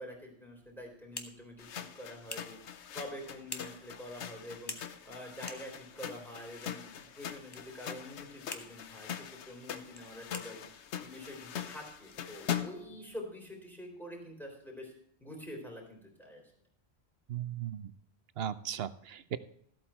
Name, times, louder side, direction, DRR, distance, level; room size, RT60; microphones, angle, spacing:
voice 1, 0.0-2.6 2.9-4.8 5.1-14.9 15.2-16.4, left 1 dB, ahead, 0 dB, 3.7 m, -46 dB
sound 1, 0.6-13.0, left 2 dB, 20° left, 1.1 m, -51 dB
sound 2, 1.6-12.9, left 9 dB, 90° left, 1.1 m, -42 dB
voice 2, 17.3-17.9 18.4-19.4, right 10 dB, 65° right, 14 dB, 0.8 m, -37 dB
14.0 x 8.4 x 4.4 m, 0.66 s
omnidirectional pair, 1.1 m